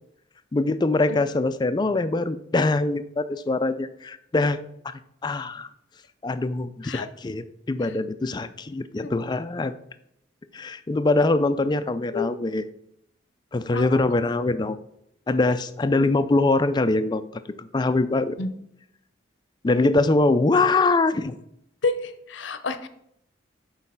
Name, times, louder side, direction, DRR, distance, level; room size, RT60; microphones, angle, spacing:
voice 1, 0.5-4.6 5.2-5.7 6.2-9.7 10.5-12.6 13.5-14.8 15.3-18.4 19.6-21.4, left 2 dB, 20° left, 12 dB, 0.3 m, -23 dB
voice 2, 21.8-22.9, left 4 dB, 70° left, 10 dB, 0.6 m, -29 dB
6.5 x 4.0 x 5.6 m, 0.76 s
head